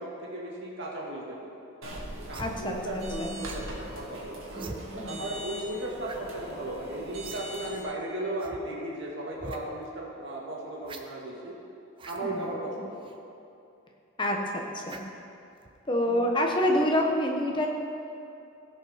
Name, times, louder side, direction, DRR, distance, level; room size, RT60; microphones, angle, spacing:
voice 1, 0.0-1.4 2.3-4.4 4.8-11.6 12.1-13.0 16.0-16.2, right 1 dB, 55° right, -4 dB, 2.1 m, -36 dB
sound 1, 1.8-7.8, right 1 dB, 70° right, 1.9 m, -41 dB
sound 2, 2.3-2.5 3.5-3.7 4.5-4.8 6.0-6.2 6.5-6.6 7.2-7.4 7.7-7.8 8.4-8.6 9.3-9.6 10.8-11.0 11.9-12.2 13.0-13.2 14.9-15.2 15.6-15.8, right 3 dB, 25° right, 0.5 m, -43 dB
voice 2, 2.4-3.4 4.6-5.3 12.2-12.8 14.2-15.0 15.9-17.7, left 1 dB, 20° left, 1 dB, 1.0 m, -28 dB
16.0 x 5.5 x 5.0 m, 2.7 s
head